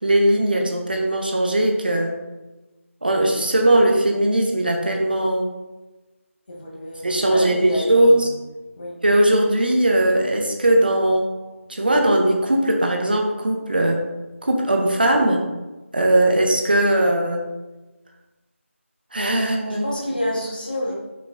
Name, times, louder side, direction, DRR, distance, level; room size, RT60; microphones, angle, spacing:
voice 1, 0.0-2.1 3.0-5.5 7.0-8.3 9.0-11.3 11.7-14.1 14.4-15.5 15.9-17.4 19.1-19.8, right 1 dB, 40° right, 2 dB, 0.7 m, -19 dB
voice 2, 6.5-8.3 8.8-9.0 19.4-20.9, left 1 dB, 40° left, -2 dB, 1.1 m, -29 dB
5.6 x 3.8 x 2.5 m, 1.1 s
figure-of-eight pair, 165°, 7 cm